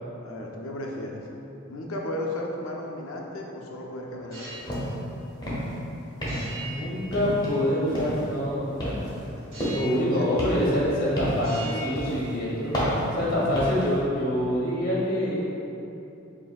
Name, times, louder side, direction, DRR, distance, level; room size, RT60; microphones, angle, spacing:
voice 1, 0.2-1.3 1.7-4.9 9.2-9.5 9.9-10.6 13.2-13.5, left 1 dB, 80° left, 0 dB, 0.5 m, -35 dB
sound 1, 4.2-4.8 6.3-7.7 9.5-10.2 10.5-11.1 11.4-12.7, right 1 dB, 45° right, 1.3 m, -41 dB
sound 2, 4.7-5.0 5.3-5.8 6.2-6.7 7.1-7.6 7.9-8.3 8.8-10.0 10.4-11.5 12.0-12.2 12.7-13.9, equal, 20° left, 0.9 m, -30 dB
voice 2, 6.6-9.0 9.7-12.7 13.1-15.4, left 1 dB, 45° left, -6 dB, 0.9 m, -26 dB
7.2 x 2.7 x 2.3 m, 2.9 s
head